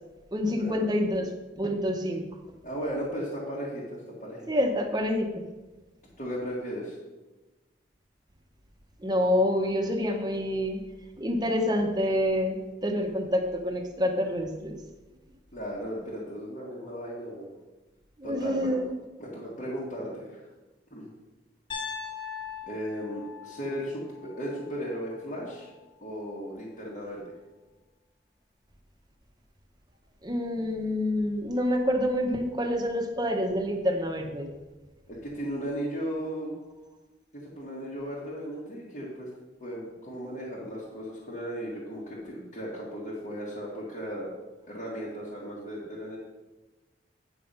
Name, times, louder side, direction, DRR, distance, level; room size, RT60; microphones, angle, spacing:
voice 1, 0.3-1.3 1.6-2.2 4.5-5.3 9.0-10.8 11.2-14.8 18.2-18.9 30.2-34.5, left 1 dB, 20° right, 4 dB, 1.0 m, -27 dB
voice 2, 2.6-4.5 6.2-7.0 15.5-17.5 18.2-18.8 19.2-20.4 20.9-21.1 22.7-25.7 26.0-27.2 35.1-36.6 37.3-39.3 39.6-44.3 44.7-46.2, equal, 40° left, -6 dB, 1.7 m, -36 dB
Piano, 21.7-25.8, left 6 dB, 25° left, 1.6 m, -41 dB
9.1 x 5.8 x 5.4 m, 1.1 s
head